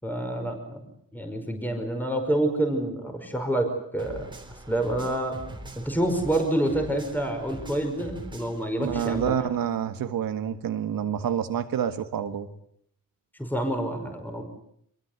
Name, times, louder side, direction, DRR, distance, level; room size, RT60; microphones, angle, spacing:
voice 1, 0.0-4.3 4.7-5.4 5.8-9.5 13.4-14.4, right 1 dB, 5° left, 4 dB, 5.3 m, -28 dB
sound 1, 4.0-9.3, right 1 dB, 15° right, 3.6 m, -42 dB
voice 2, 8.8-12.5, right 9 dB, 80° right, 8 dB, 1.8 m, -28 dB
26.0 x 22.0 x 8.2 m, 0.70 s
cardioid pair, 125°, 34 cm